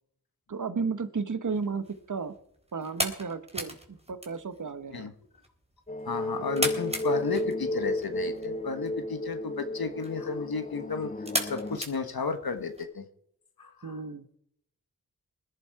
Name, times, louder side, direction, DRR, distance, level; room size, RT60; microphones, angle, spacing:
voice 1, 0.5-2.3 2.7-5.1 13.8-14.3, right 5 dB, 55° right, 12 dB, 1.2 m, -33 dB
sound 1, 1.4-12.8, right 1 dB, 15° right, 3.8 m, -38 dB
sound 2, 5.9-11.8, left 1 dB, 20° left, 0.7 m, -33 dB
voice 2, 6.0-11.1 11.4-13.0 13.6-14.0, left 5 dB, 75° left, 7 dB, 1.3 m, -33 dB
20.0 x 11.5 x 4.7 m, 0.72 s
cardioid pair, 40°, 37 cm